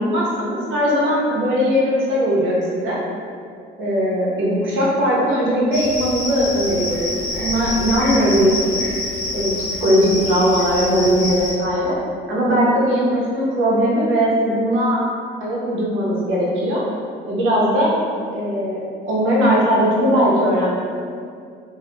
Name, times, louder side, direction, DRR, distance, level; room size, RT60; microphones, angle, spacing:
voice 1, 0.0-3.0 3.8-8.7 9.3-9.5 9.8-12.0 12.3-15.0 15.4-16.8 17.3-17.9 18.3-20.7, equal, 80° right, -5 dB, 0.6 m, -19 dB
Cricket, 5.7-11.5, left 2 dB, 85° left, 0.6 m, -27 dB
2.1 x 2.0 x 2.9 m, 2.3 s
cardioid pair, 90°, 20 cm